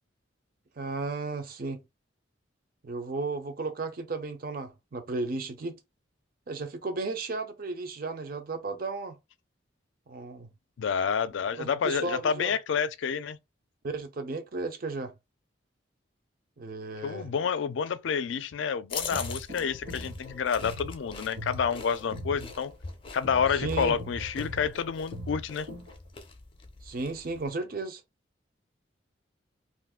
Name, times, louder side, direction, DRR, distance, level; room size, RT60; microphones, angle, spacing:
voice 1, 0.8-1.8 2.8-5.8 6.5-9.2 10.1-10.5 11.6-12.5 13.8-15.1 16.6-17.3 23.6-23.9 26.8-28.0, right 3 dB, 50° right, 0.5 m, -34 dB
voice 2, 10.8-13.4 17.0-22.7 23.1-25.7, left 6 dB, 75° left, 0.4 m, -29 dB
sound 1, 18.9-27.5, left 5 dB, 30° left, 0.5 m, -43 dB
sound 2, 18.9-25.9, left 1 dB, 65° right, 1.4 m, -40 dB
2.5 x 2.4 x 3.5 m
head